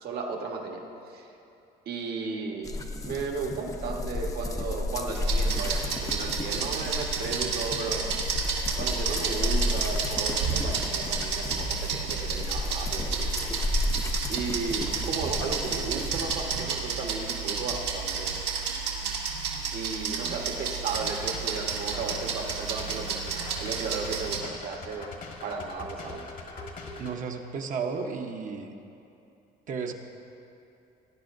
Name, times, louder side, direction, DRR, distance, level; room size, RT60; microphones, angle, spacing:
voice 1, 0.0-1.3 1.8-8.1 8.8-13.3 14.3-18.4 19.7-25.1 25.4-26.2, right 4 dB, 70° right, 1 dB, 1.5 m, -35 dB
sound 1, 2.6-16.6, left 2 dB, 20° left, 0.7 m, -32 dB
sound 2, 5.1-24.4, right 5 dB, 90° right, 1.7 m, -31 dB
sound 3, 20.9-27.2, left 3 dB, 60° left, 1.6 m, -43 dB
voice 2, 27.0-28.7 29.7-29.9, right 5 dB, 50° right, 3 dB, 0.9 m, -33 dB
19.0 x 10.0 x 2.6 m, 2.7 s
cardioid pair, 110°, 17 cm